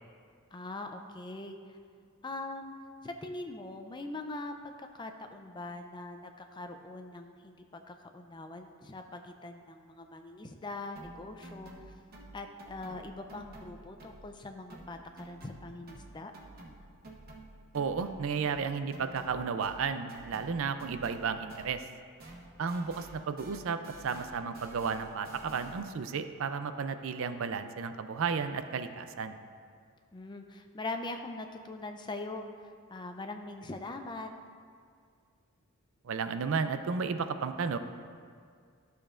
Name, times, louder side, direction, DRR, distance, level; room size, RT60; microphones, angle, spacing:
voice 1, 0.5-1.8 2.2-2.7 3.0-11.7 12.3-16.3 30.1-34.3, left 2 dB, 20° left, 5 dB, 0.4 m, -42 dB
sound 1, 11.0-14.4 14.7-21.9 22.2-26.0, right 2 dB, 45° right, 0.9 m, -51 dB
voice 2, 17.7-21.8 22.6-29.4 36.0-37.8, right 5 dB, 60° right, 10 dB, 0.4 m, -33 dB
13.0 x 6.8 x 2.5 m, 2.1 s
head